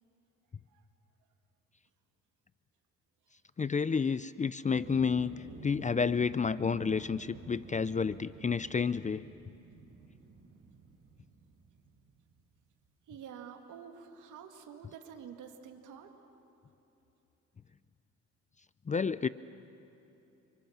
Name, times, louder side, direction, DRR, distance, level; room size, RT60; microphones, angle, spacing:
voice 1, 3.6-5.3 5.6-9.2 18.9-19.3, left 5 dB, 25° left, 16 dB, 0.5 m, -30 dB
sound 1, 4.8-12.4, right 4 dB, 50° right, 4.9 m, -51 dB
voice 2, 13.1-16.1, right 7 dB, 85° right, 4 dB, 2.1 m, -48 dB
29.5 x 25.5 x 7.3 m, 3.0 s
cardioid pair, 90°, 30 cm